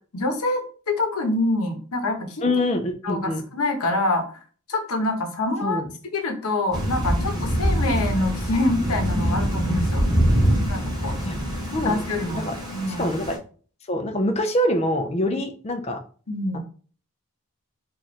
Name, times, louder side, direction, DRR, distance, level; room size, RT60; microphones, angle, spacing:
voice 1, 0.1-2.5 3.0-4.3 4.7-5.8 6.1-10.1 10.7-11.3 11.8-13.1 15.2-15.4 16.3-16.6, left 2 dB, 80° left, 4 dB, 0.9 m, -26 dB
voice 2, 2.4-3.4 5.6-5.9 11.3-11.4 11.7-12.6 12.9-13.4 13.9-16.0 16.5-16.6, left 1 dB, 30° left, 6 dB, 0.5 m, -25 dB
Thunder / Rain, 6.7-13.4, equal, 20° right, 1.0 m, -24 dB
3.1 x 2.5 x 4.1 m, 0.41 s
head